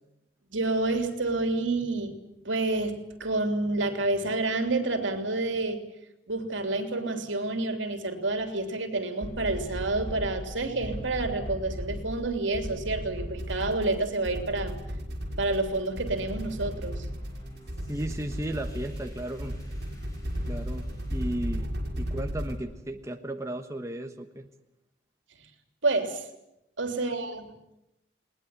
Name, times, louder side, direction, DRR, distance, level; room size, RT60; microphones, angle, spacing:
voice 1, 0.5-2.1 2.4-5.8 6.3-14.8 15.4-17.1 25.8-26.2 26.8-27.5, right 2 dB, 80° right, 6 dB, 3.3 m, -29 dB
sound 1, 9.2-22.6, equal, 60° right, 5.4 m, -35 dB
sound 2, 15.9-21.4, equal, 20° left, 6.2 m, -51 dB
voice 2, 17.9-19.5 20.5-20.9 21.1-21.7 22.0-24.5 27.1-27.2, right 1 dB, 15° right, 4 dB, 1.2 m, -35 dB
21.0 x 20.0 x 9.8 m, 0.87 s
head